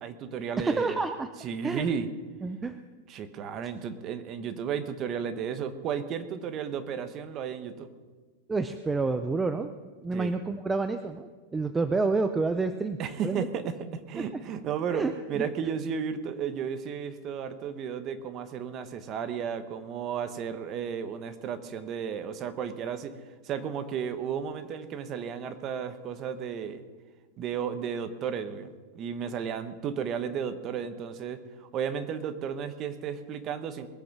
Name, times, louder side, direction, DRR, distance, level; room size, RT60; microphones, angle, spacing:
voice 1, 0.0-1.0 1.4-2.1 3.1-7.9 10.1-10.3 13.0-23.1 23.4-26.8 27.4-28.7 28.9-33.9, right 7 dB, 25° right, 10 dB, 1.0 m, -33 dB
voice 2, 0.6-1.3 1.6-1.8 2.4-2.8 8.5-9.7 10.0-13.0 13.2-13.5 14.2-14.3 14.9-15.5, right 3 dB, 10° right, 9 dB, 0.5 m, -29 dB
21.0 x 7.9 x 6.0 m, 1.4 s
supercardioid pair, 165°, 0 cm